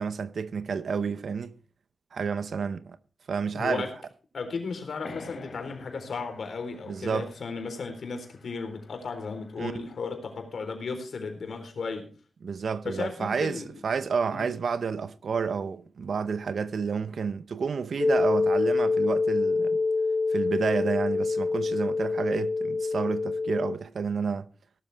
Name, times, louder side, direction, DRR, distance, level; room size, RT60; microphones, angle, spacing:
voice 1, 0.0-1.6 2.1-3.0 3.3-3.9 6.9-7.3 9.6-9.7 12.4-19.8 20.3-24.5, right 5 dB, 80° right, 0.8 m, -30 dB
voice 2, 3.5-3.9 4.3-12.1 12.8-13.7 14.3-14.4, left 4 dB, 85° left, 3.9 m, -35 dB
sound 1, 5.0-10.2, left 4 dB, 65° left, 3.3 m, -49 dB
sound 2, 18.0-23.7, left 3 dB, 40° left, 1.1 m, -26 dB
18.0 x 12.5 x 3.5 m
wide cardioid pair, 155°, 0 cm